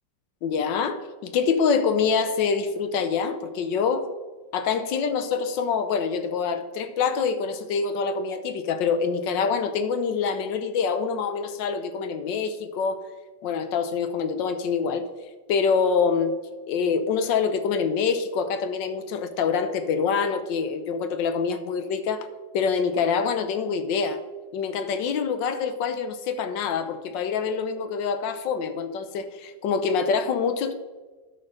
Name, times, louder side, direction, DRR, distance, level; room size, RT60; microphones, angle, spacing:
voice 1, 0.4-4.1 4.5-13.0 13.4-15.1 15.5-16.3 16.7-22.3 22.5-24.2 24.5-30.7, left 5 dB, 80° left, 10 dB, 1.5 m, -25 dB
11.5 x 4.4 x 6.3 m, 1.3 s
omnidirectional pair, 2.0 m